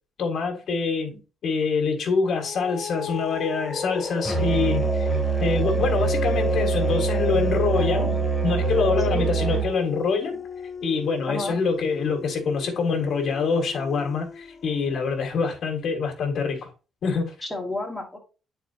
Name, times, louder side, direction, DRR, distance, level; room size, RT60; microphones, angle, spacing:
voice 1, 0.2-5.1 5.4-8.1 8.4-10.4 10.8-16.7 17.0-17.3, left 5 dB, 60° left, 1.7 m, -25 dB
sound 1, 2.2-15.0, left 5 dB, 35° left, 0.4 m, -33 dB
Musical instrument, 4.2-9.7, right 7 dB, 25° right, 1.1 m, -25 dB
voice 2, 7.7-8.3 9.1-9.3 11.3-11.6 17.4-18.2, left 2 dB, ahead, 1.4 m, -31 dB
9.1 x 4.4 x 2.8 m
cardioid pair, 130°, 0 cm